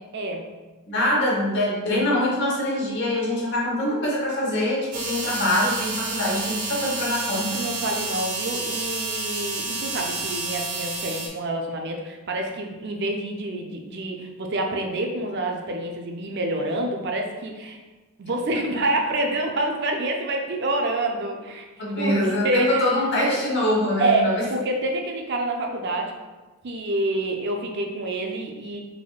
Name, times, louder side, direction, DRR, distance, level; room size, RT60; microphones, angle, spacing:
voice 1, 0.1-0.5 7.6-17.8 18.2-21.7 22.0-22.9 23.3-23.4 24.0-26.1 26.6-28.8, right 1 dB, 50° right, 2 dB, 0.5 m, -27 dB
voice 2, 0.9-7.6 21.8-24.4, left 1 dB, 50° left, -3 dB, 1.1 m, -24 dB
sound 1, 4.9-11.3, right 3 dB, 90° right, 1.2 m, -30 dB
5.2 x 3.5 x 2.4 m, 1.2 s
head